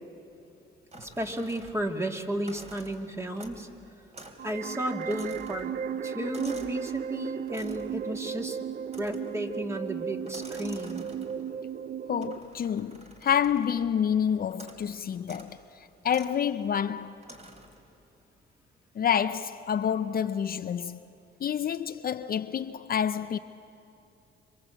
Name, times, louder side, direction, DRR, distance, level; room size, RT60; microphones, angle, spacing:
sound 1, 0.9-2.0 2.3-3.7 4.1-4.4 4.7-6.8 7.5-8.0 8.9-9.4 10.2-11.5 12.2-13.9 14.5-14.9 15.2-15.5 16.1-16.4 17.2-17.8, right 1 dB, 35° right, 3.6 m, -49 dB
voice 1, 1.0-3.7 4.4-5.7 6.0-8.6 9.0-11.1, right 1 dB, 15° right, 2.1 m, -33 dB
sound 2, 4.4-12.4, right 8 dB, 50° right, 0.7 m, -35 dB
voice 2, 12.1-17.2 18.9-21.0 21.4-23.4, left 8 dB, 50° left, 0.6 m, -28 dB
26.0 x 25.0 x 8.2 m
cardioid pair, 90°, 20 cm